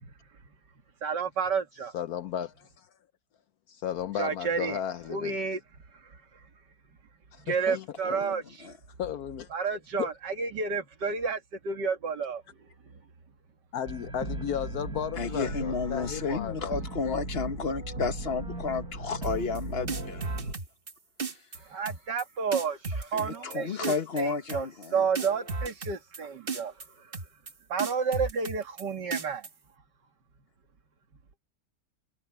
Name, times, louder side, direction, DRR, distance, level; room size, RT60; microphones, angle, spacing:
voice 1, 1.0-1.9 4.2-4.8 5.1-5.6 7.4-8.7 9.5-12.4 21.6-24.7 24.9-27.1 27.7-29.5, right 5 dB, 80° right, 2.5 m, -31 dB
voice 2, 1.9-2.9 3.7-5.4 7.3-7.9 9.0-10.1 13.7-16.7 17.1-17.2, left 9 dB, 65° left, 1.1 m, -34 dB
voice 3, 8.0-8.8 15.2-20.3 21.3-21.4 22.9-25.0, left 4 dB, 40° left, 1.3 m, -32 dB
sound 1, 13.9-20.5, right 2 dB, 60° right, 7.9 m, -37 dB
sound 2, 19.2-19.6 19.9-20.9 21.2-21.6 21.8-22.2 22.5-23.6 23.8-24.2 24.5-24.9 25.1-26.2 26.5-26.9 27.1-27.5 27.8-28.8 29.1-29.5, right 4 dB, 35° right, 1.5 m, -34 dB
omnidirectional pair, 1.8 m